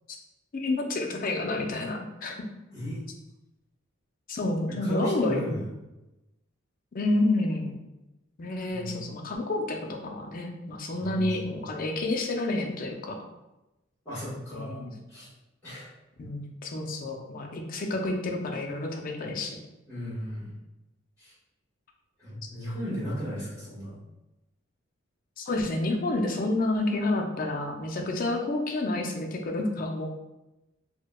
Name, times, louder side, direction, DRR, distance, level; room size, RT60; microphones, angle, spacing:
voice 1, 0.5-2.3 4.3-5.5 6.9-7.7 8.4-13.1 14.5-14.9 16.2-19.6 25.4-30.1, left 2 dB, 45° left, 2 dB, 0.4 m, -29 dB
voice 2, 4.8-5.6 8.7-9.0 11.0-11.7 14.0-14.8 15.1-15.3 15.6-15.9 19.9-20.5 21.2-21.3 22.2-24.0, equal, 10° left, -16 dB, 1.3 m, -35 dB
4.4 x 2.1 x 2.2 m, 0.98 s
head